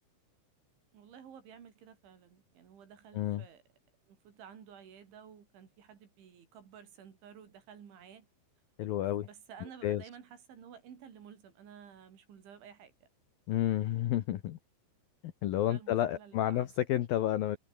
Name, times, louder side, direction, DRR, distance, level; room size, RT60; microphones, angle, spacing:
voice 1, 0.9-3.6 4.1-8.3 9.2-13.1 15.6-16.7, right 8 dB, 65° right, 5.9 m, -53 dB
voice 2, 3.1-3.4 8.8-9.3 9.8-10.0 13.5-14.6 15.2-17.6, left 12 dB, 85° left, 2.0 m, -30 dB
omnidirectional pair, 6.0 m